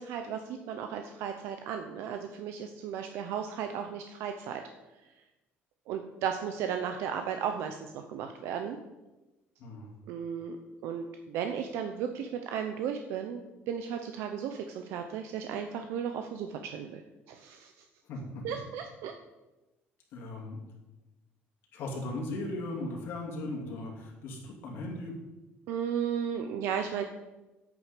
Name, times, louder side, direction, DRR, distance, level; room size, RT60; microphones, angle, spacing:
voice 1, 0.0-4.6 5.9-8.8 10.1-10.6 10.8-13.4 13.7-17.0 17.3-17.7 18.4-19.1 25.7-27.0, right 8 dB, 75° right, 6 dB, 0.7 m, -35 dB
voice 2, 9.6-9.9 18.0-18.6 20.1-20.6 21.7-25.2, left 2 dB, 60° left, -2 dB, 2.4 m, -38 dB
9.6 x 8.6 x 5.1 m, 1.1 s
cardioid pair, 165°, 4 cm